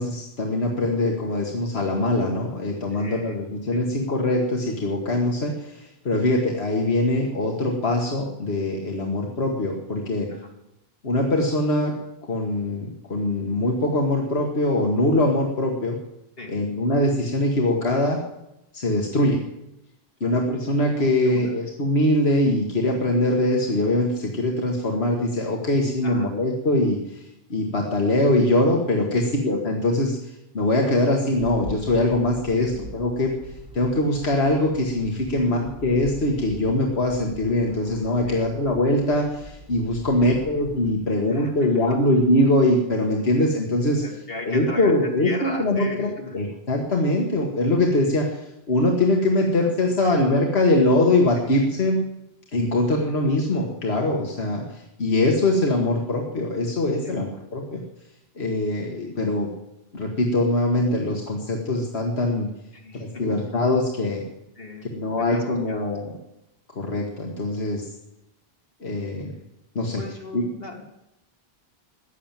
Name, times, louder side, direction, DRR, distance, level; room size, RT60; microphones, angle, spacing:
voice 1, 0.0-10.3 11.0-11.9 12.3-16.0 16.5-18.2 18.7-19.4 20.2-27.2 27.5-30.2 30.5-33.3 33.7-44.0 44.5-52.0 52.5-57.8 58.4-59.5 59.9-62.5 63.0-64.2 64.9-66.1 66.8-67.8 68.8-69.3 69.8-70.0 70.3-70.4, left 1 dB, 85° left, 0 dB, 1.9 m, -22 dB
voice 2, 2.9-3.4 3.7-3.9 10.3-10.5 16.4-16.6 20.2-20.4 21.2-21.5 26.0-26.3 29.1-29.3 32.6-32.9 35.3-35.5 38.3-38.5 40.2-40.4 41.3-42.0 44.0-46.4 49.6-50.3 51.4-51.5 52.7-52.9 57.0-57.2 62.7-63.4 64.5-65.9 70.0-70.8, left 2 dB, 65° left, 0 dB, 3.1 m, -38 dB
sound 1, 31.4-40.9, right 1 dB, 80° right, 5.3 m, -43 dB
15.5 x 10.5 x 7.4 m, 0.88 s
omnidirectional pair, 1.0 m